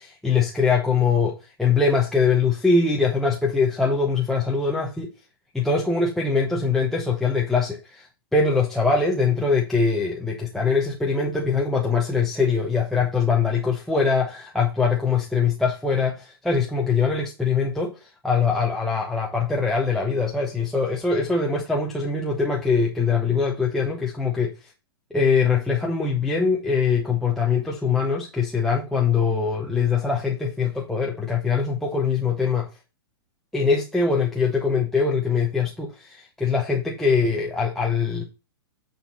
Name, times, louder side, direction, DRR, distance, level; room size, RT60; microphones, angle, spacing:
voice 1, 0.0-5.1 5.5-24.5 25.1-32.7 33.5-38.2, left 5 dB, ahead, 1.0 m, -22 dB
9.2 x 4.4 x 4.3 m
hypercardioid pair, 135°, 14 cm